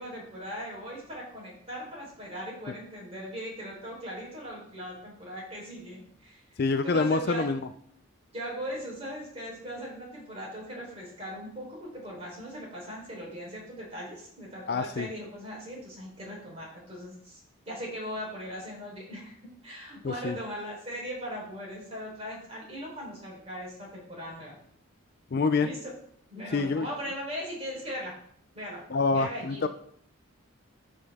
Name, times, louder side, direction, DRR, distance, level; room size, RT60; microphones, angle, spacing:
voice 1, 0.0-6.4 6.8-7.4 8.3-17.4 17.7-19.4 19.6-24.6 25.6-25.9 26.3-28.1 28.5-28.8 29.1-29.7, equal, 30° right, -3 dB, 3.7 m, -39 dB
voice 2, 6.6-7.6 14.7-15.1 20.0-20.4 25.3-25.7 26.5-26.9 28.9-29.7, left 4 dB, 45° left, 10 dB, 0.4 m, -26 dB
13.0 x 5.3 x 3.5 m, 0.65 s
head